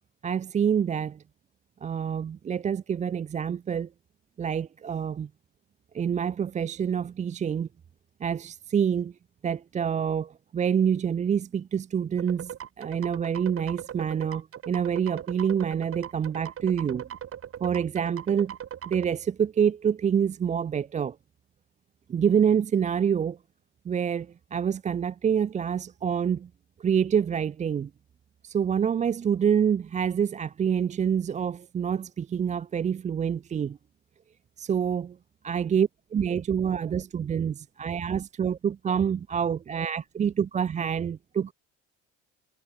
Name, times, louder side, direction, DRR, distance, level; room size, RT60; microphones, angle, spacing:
voice 1, 0.2-1.2 1.8-3.9 4.4-5.3 5.9-7.7 8.2-9.1 9.4-17.0 17.6-18.5 18.9-21.1 22.1-23.4 23.9-26.5 26.8-27.9 28.4-33.8 34.6-35.1 35.4-41.5, right 8 dB, 25° right, 0.4 m, -27 dB
sound 1, 12.2-19.0, right 9 dB, 45° right, 6.8 m, -39 dB
cardioid pair, 115°, 31 cm